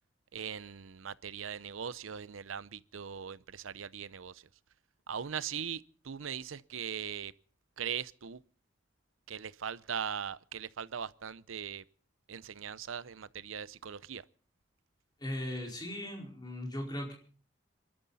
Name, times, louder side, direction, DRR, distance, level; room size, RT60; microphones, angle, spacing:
voice 1, 0.3-4.4 5.1-7.3 7.8-8.4 9.3-11.8 12.3-14.2, right 7 dB, 90° right, 0.7 m, -40 dB
voice 2, 15.2-17.1, left 1 dB, 20° left, 4.7 m, -38 dB
26.5 x 12.5 x 4.1 m
head